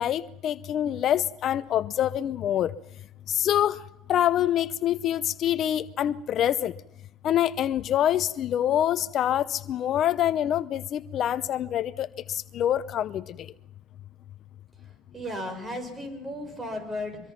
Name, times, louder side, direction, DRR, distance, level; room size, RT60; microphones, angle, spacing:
voice 1, 0.0-2.7 3.3-3.8 4.1-6.7 7.2-13.4, left 11 dB, 50° left, 0.7 m, -25 dB
voice 2, 15.1-17.2, left 1 dB, 20° right, 6.6 m, -34 dB
24.5 x 23.0 x 5.9 m
supercardioid pair, 105°, 0 cm